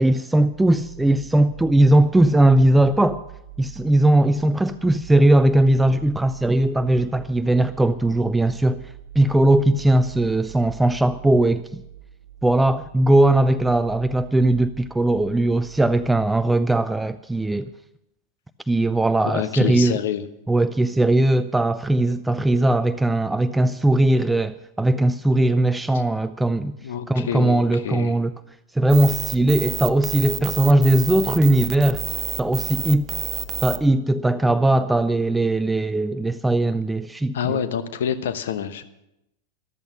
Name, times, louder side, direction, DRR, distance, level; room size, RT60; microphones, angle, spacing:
voice 1, 0.0-3.2 3.6-11.8 12.4-17.7 18.7-20.0 20.5-26.8 27.1-28.3 28.7-32.0 32.4-33.1 33.6-37.6, right 1 dB, 5° right, 0.4 m, -19 dB
sound 1, 0.5-16.4, right 10 dB, 60° right, 0.7 m, -42 dB
voice 2, 19.2-20.2 26.8-28.2 37.3-38.8, left 8 dB, 60° left, 1.1 m, -27 dB
sound 2, 28.9-33.8, right 9 dB, 30° right, 0.9 m, -29 dB
14.0 x 12.5 x 6.0 m
figure-of-eight pair, 90°, 0 cm